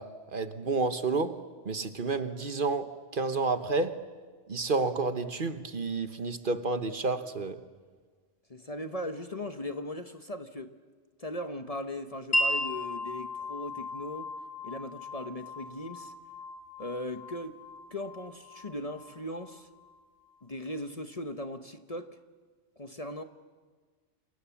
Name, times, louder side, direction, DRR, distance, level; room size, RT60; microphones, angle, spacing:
voice 1, 0.0-1.4 1.6-4.0 4.5-7.6, right 3 dB, 45° right, 1.3 m, -30 dB
voice 2, 8.5-10.8 11.2-14.3 14.6-16.1 16.8-17.6 17.9-19.7 20.4-22.2 22.8-23.2, left 1 dB, 35° left, 1.0 m, -38 dB
Wind chime, 12.3-20.0, left 1 dB, 55° left, 2.4 m, -36 dB
29.0 x 27.0 x 7.2 m
omnidirectional pair, 1.2 m